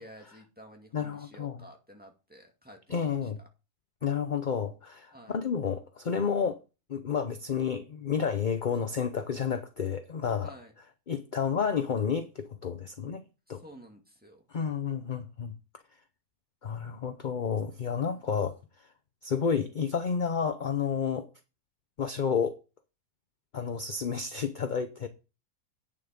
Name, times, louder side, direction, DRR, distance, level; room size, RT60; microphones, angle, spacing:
voice 1, 0.0-3.5 5.1-5.4 10.4-10.7 13.5-14.5 17.9-18.3, equal, 5° right, 2.0 m, -52 dB
voice 2, 0.9-1.6 2.9-3.4 4.0-6.6 6.9-10.5 11.1-13.2 13.5-13.6 14.5-15.5 16.6-18.6 19.2-21.3 22.0-22.6 23.5-25.1, left 6 dB, 40° left, 0.7 m, -30 dB
9.0 x 7.1 x 5.1 m
omnidirectional pair, 1.6 m